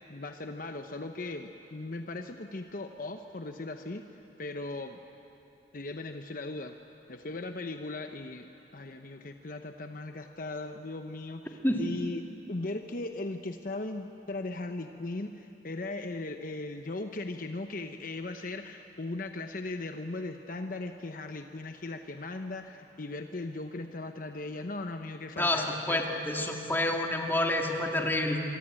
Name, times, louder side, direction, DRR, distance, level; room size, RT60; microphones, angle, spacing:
voice 1, 0.0-5.0 5.7-6.8 7.1-26.2, left 2 dB, 50° left, 6 dB, 0.9 m, -38 dB
voice 2, 25.4-28.4, left 1 dB, 10° left, 1 dB, 2.2 m, -28 dB
25.5 x 24.0 x 8.9 m, 3.0 s
head